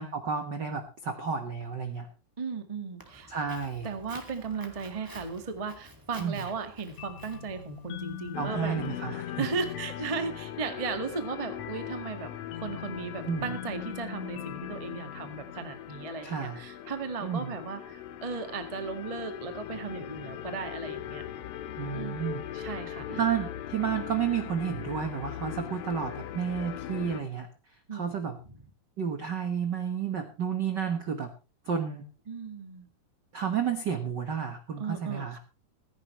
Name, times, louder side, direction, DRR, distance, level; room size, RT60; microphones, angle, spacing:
voice 1, 0.0-2.1 3.3-3.9 6.2-6.4 8.4-9.5 13.3-13.5 16.2-16.6 17.2-17.5 21.8-22.4 23.1-27.5 27.9-28.4 29.0-31.3 31.6-32.0 33.3-35.4, right 7 dB, 70° right, 7 dB, 1.0 m, -31 dB
voice 2, 2.4-3.3 3.8-8.7 9.4-12.3 12.6-21.2 21.9-23.2 27.9-28.2 32.3-32.9 34.8-35.4, right 5 dB, 30° right, 7 dB, 0.6 m, -36 dB
Walk footsteps, 3.0-9.1, equal, 10° right, 1.6 m, -51 dB
sound 1, 7.0-16.3, left 10 dB, 70° left, 1.8 m, -43 dB
sound 2, 8.3-27.2, left 11 dB, 85° left, 2.9 m, -40 dB
16.0 x 15.0 x 3.1 m, 0.32 s
omnidirectional pair, 4.0 m